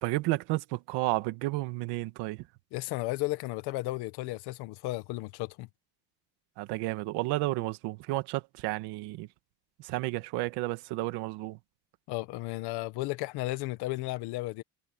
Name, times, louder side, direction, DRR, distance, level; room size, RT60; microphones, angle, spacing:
voice 1, 0.0-2.5 6.6-9.3 9.8-11.6, right 19 dB, 90° right, 1.6 m, -32 dB
voice 2, 2.7-5.7 12.1-14.6, left 19 dB, 75° left, 1.3 m, -34 dB
cardioid pair, 155°, 39 cm